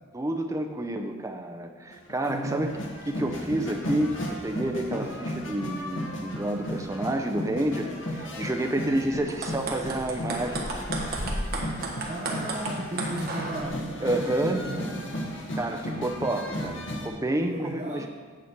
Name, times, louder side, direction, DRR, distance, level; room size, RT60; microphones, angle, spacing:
voice 1, 0.1-2.7 3.1-11.0 14.0-14.6 15.6-18.1, right 1 dB, 15° right, 5 dB, 0.5 m, -29 dB
sound 1, 1.9-17.1, equal, 60° left, 1.2 m, -35 dB
voice 2, 2.2-2.8 4.9-5.2 12.0-15.3 17.4-18.1, right 1 dB, 30° right, -2 dB, 0.9 m, -36 dB
sound 2, 9.3-13.7, right 2 dB, 45° right, 1.3 m, -33 dB
8.5 x 7.9 x 4.5 m, 1.5 s
head